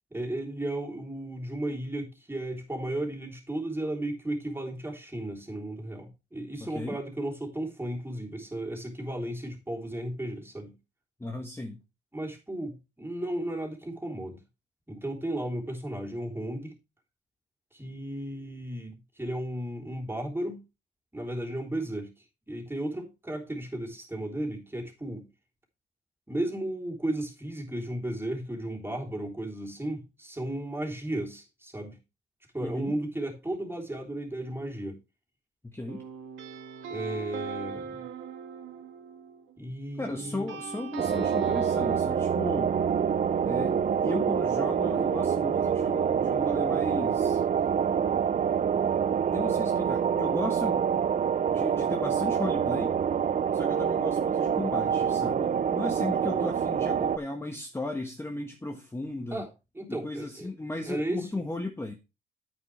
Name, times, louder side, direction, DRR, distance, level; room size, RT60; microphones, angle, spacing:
voice 1, 0.1-10.7 12.1-14.4 14.9-16.7 17.7-20.6 21.1-22.1 22.5-25.3 26.3-32.0 32.5-35.0 36.9-38.0 39.6-40.5 59.3-59.5 59.8-60.5 60.8-61.3, right 1 dB, 10° right, 3.5 m, -34 dB
voice 2, 6.6-7.0 11.2-11.8 32.6-33.0 35.6-36.0 40.0-42.8 43.4-47.4 49.3-51.1 51.5-53.0 53.5-59.5 59.9-61.9, left 2 dB, 10° left, 1.4 m, -36 dB
sound 1, 35.9-39.6 40.0-42.0, right 6 dB, 80° right, 2.3 m, -40 dB
sound 2, 41.0-57.2, right 7 dB, 40° right, 0.6 m, -26 dB
9.6 x 8.4 x 3.3 m
cardioid pair, 90°, 20 cm